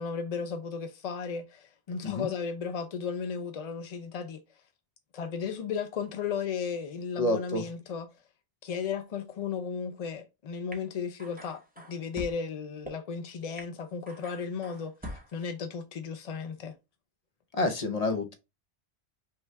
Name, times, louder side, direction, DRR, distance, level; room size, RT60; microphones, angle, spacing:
voice 1, 0.0-4.4 5.1-8.1 8.6-11.6 11.9-16.7, left 6 dB, 55° left, 0.4 m, -35 dB
voice 2, 7.2-7.6 17.5-18.3, left 2 dB, 40° left, 0.8 m, -28 dB
sound 1, 10.7-10.8 11.2-12.3 12.9-13.0 13.6-13.7 14.1-15.4, equal, 10° right, 1.0 m, -43 dB
5.6 x 2.3 x 3.2 m
omnidirectional pair, 1.1 m